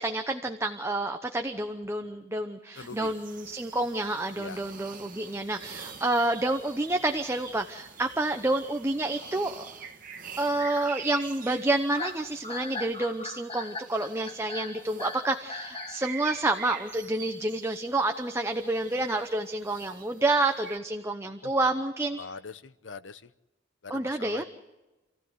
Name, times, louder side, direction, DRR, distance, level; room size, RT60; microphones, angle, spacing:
voice 1, 0.0-9.6 10.4-22.2 23.9-24.4, right 2 dB, 15° right, 6 dB, 0.8 m, -29 dB
sound 1, 2.7-20.8, right 6 dB, 45° right, 2.1 m, -46 dB
voice 2, 2.8-3.1 4.4-4.6 21.4-21.5 22.2-23.2 23.8-24.4, left 4 dB, 85° left, 13 dB, 0.9 m, -42 dB
sound 2, 11.9-16.0, left 3 dB, 30° left, 1.8 m, -38 dB
27.5 x 15.0 x 8.0 m, 1.1 s
head